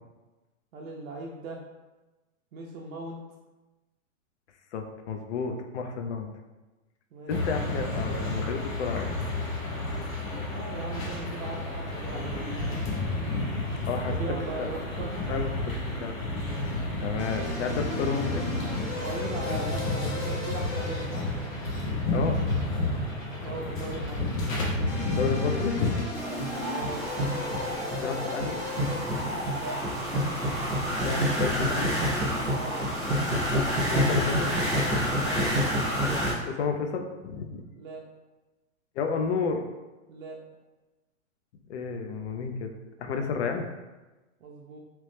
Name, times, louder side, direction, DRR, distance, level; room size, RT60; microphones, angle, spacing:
voice 1, 0.7-1.6 2.5-3.2 7.1-7.6 10.5-12.6 14.1-15.5 19.0-21.2 23.4-24.2 26.7-27.0 29.5-29.8 32.5-32.8 35.2-35.5 37.8-38.0 40.1-40.4 44.4-44.8, right 3 dB, 85° right, -2 dB, 0.6 m, -39 dB
voice 2, 4.7-6.3 7.3-9.1 13.9-14.1 14.6-14.7 15.3-15.5 16.0-16.4 17.0-18.5 22.1-22.4 25.1-26.1 28.0-29.5 31.0-31.9 33.9-34.6 36.4-37.6 39.0-39.6 41.7-42.7 43.0-43.7, left 5 dB, 55° left, 5 dB, 0.5 m, -31 dB
sound 1, 7.3-26.0, left 2 dB, 80° left, 1.0 m, -31 dB
sound 2, 17.2-32.5, left 1 dB, 25° left, 0.8 m, -39 dB
sound 3, 26.1-36.3, equal, ahead, 0.4 m, -28 dB
2.9 x 2.0 x 3.1 m, 1.1 s
hypercardioid pair, 145°, 40 cm